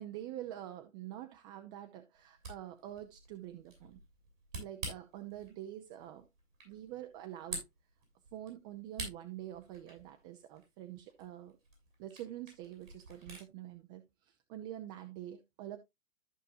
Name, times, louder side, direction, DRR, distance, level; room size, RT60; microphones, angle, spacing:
voice 1, 0.0-4.0 4.6-6.3 6.6-7.6 8.3-11.6 12.0-15.8, right 12 dB, 35° right, 0.9 m, -46 dB
Camera, 2.1-13.5, right 2 dB, 85° right, 6.5 m, -49 dB
14.0 x 5.3 x 2.7 m
hypercardioid pair, 135°, 38 cm